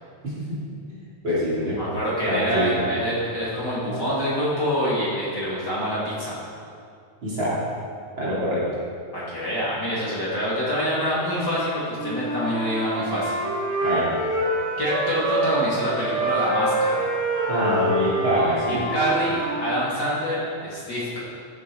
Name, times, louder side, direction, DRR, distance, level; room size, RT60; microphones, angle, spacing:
voice 1, 0.2-0.6 0.9-1.0 1.2-1.8 2.3-2.8 7.2-7.6 8.2-8.6 13.8-14.2 17.5-18.8, equal, 40° right, -9 dB, 3.3 m, -25 dB
voice 2, 1.8-6.4 9.1-13.4 14.8-17.0 18.7-21.2, equal, 35° left, -8 dB, 3.1 m, -26 dB
Wind instrument woodwind instrument, 11.9-15.7 16.0-19.8, right 1 dB, 60° right, 4.8 m, -26 dB
15.0 x 8.4 x 4.9 m, 2.4 s
omnidirectional pair, 3.4 m